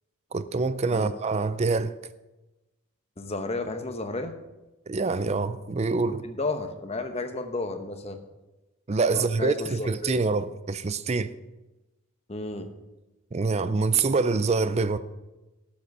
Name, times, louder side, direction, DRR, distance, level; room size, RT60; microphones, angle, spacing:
voice 1, 0.3-1.9 4.9-6.2 8.9-11.3 13.3-15.0, right 4 dB, 30° right, 0.4 m, -25 dB
voice 2, 3.2-4.3 6.2-8.2 9.1-10.2 12.3-12.7, left 2 dB, 30° left, 0.9 m, -32 dB
12.5 x 7.4 x 5.4 m
head